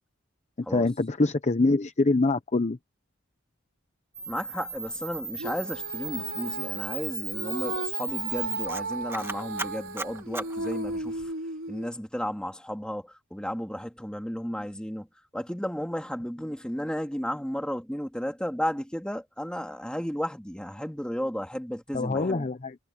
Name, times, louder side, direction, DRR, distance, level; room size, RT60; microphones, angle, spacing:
voice 1, 0.6-2.8 21.9-22.7, left 2 dB, 35° left, 0.7 m, -24 dB
Camera, 4.1-11.3, right 4 dB, 10° right, 1.8 m, -36 dB
voice 2, 4.3-11.3 11.7-15.1 15.3-22.5, equal, 5° left, 2.8 m, -33 dB
Female singing, 5.4-11.9, right 2 dB, 65° right, 4.6 m, -35 dB
head